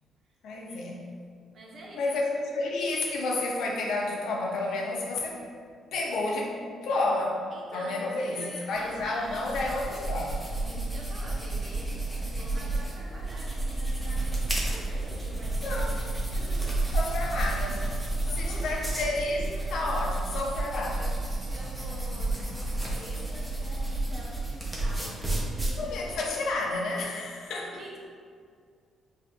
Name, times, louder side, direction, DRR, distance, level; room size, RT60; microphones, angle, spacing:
voice 1, 0.4-1.1 1.9-5.4 5.9-6.5 6.8-7.3 7.7-10.4 15.6-16.0 16.9-21.2 25.7-27.8, left 2 dB, 75° left, -1 dB, 0.6 m, -31 dB
voice 2, 1.5-2.1 7.5-8.0 8.3-9.4 10.7-15.8 16.1-16.9 18.2-19.0 21.4-25.7 27.7-28.0, right 1 dB, 50° right, -3 dB, 0.9 m, -47 dB
sound 1, 8.7-26.2, right 2 dB, ahead, 0.9 m, -31 dB
5.0 x 2.5 x 2.5 m, 2.2 s
cardioid pair, 90°, 0 cm